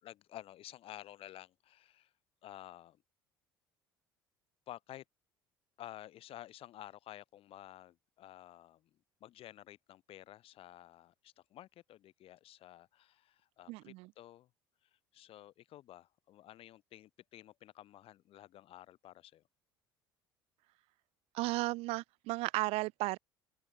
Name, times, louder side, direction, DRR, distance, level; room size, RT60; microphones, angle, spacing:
voice 1, 0.0-2.1 2.4-3.0 4.7-5.0 5.8-8.9 9.2-14.5 15.1-19.4, left 13 dB, 55° left, 4.5 m, -52 dB
voice 2, 13.7-14.1 21.3-23.2, right 21 dB, 60° right, 0.5 m, -34 dB
open air
figure-of-eight pair, 60°, 12 cm